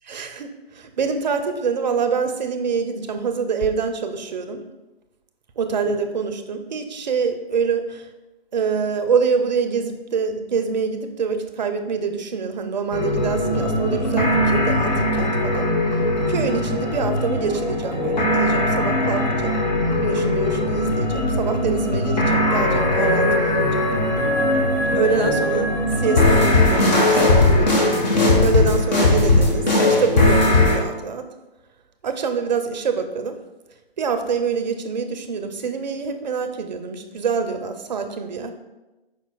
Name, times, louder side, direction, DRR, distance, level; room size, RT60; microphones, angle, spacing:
voice 1, 0.1-4.6 5.6-8.1 8.5-15.7 16.3-19.6 20.0-23.9 24.9-25.7 26.0-27.8 28.4-31.3 32.0-33.4 34.0-38.5, right 5 dB, 45° right, 7 dB, 0.5 m, -25 dB
sound 1, 12.9-30.8, left 1 dB, 45° left, 1.0 m, -19 dB
5.1 x 4.1 x 2.2 m, 1.1 s
figure-of-eight pair, 145°, 31 cm